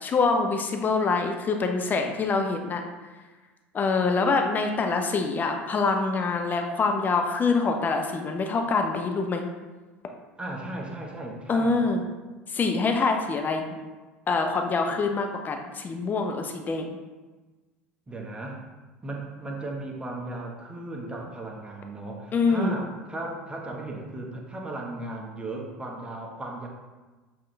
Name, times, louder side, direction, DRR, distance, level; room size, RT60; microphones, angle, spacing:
voice 1, 0.0-2.8 3.7-9.5 11.5-12.0 12.5-13.6 14.3-17.0 22.3-22.8, left 4 dB, 25° left, 4 dB, 0.7 m, -25 dB
voice 2, 10.4-11.8 18.1-18.6 19.0-26.7, right 2 dB, 15° right, -1 dB, 1.2 m, -36 dB
7.4 x 3.8 x 3.3 m, 1.2 s
figure-of-eight pair, 70°, 7 cm